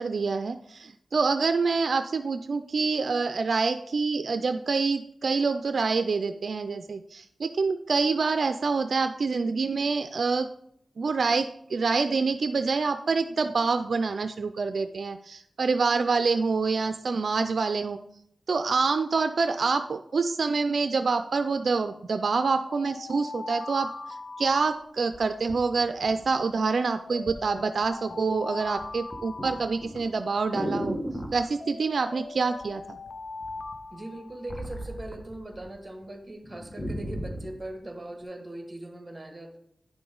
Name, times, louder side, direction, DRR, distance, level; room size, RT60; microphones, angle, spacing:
voice 1, 0.0-10.5 11.0-18.0 18.5-23.9 24.4-31.0 31.3-33.0, right 4 dB, 75° right, 9 dB, 0.4 m, -26 dB
Alarm, 22.7-25.3 26.6-30.3 31.6-34.8, left 3 dB, 55° left, 0.5 m, -41 dB
sound 1, 24.5-24.6 25.1-26.6 27.3-27.5 27.8-28.3 28.6-31.5 32.6-33.1 33.4-35.7 36.0-36.1 36.4-37.6 38.2-38.3, equal, 30° left, 1.4 m, -36 dB
voice 2, 33.9-39.6, right 1 dB, 20° right, 4 dB, 1.8 m, -40 dB
9.8 x 5.9 x 3.8 m, 0.70 s
wide cardioid pair, 65°, 0 cm